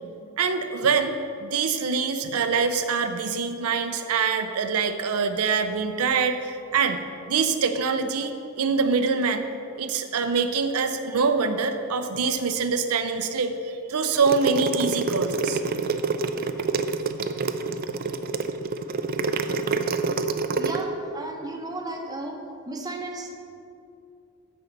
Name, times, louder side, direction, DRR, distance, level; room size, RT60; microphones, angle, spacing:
voice 1, 0.4-9.5 9.8-15.6, right 5 dB, 85° right, 7 dB, 0.6 m, -25 dB
sound 1, 14.1-20.8, right 4 dB, 40° right, 0.4 m, -27 dB
voice 2, 20.6-22.4 22.7-23.4, right 2 dB, 15° right, 2 dB, 0.8 m, -34 dB
14.0 x 5.5 x 4.0 m, 2.5 s
head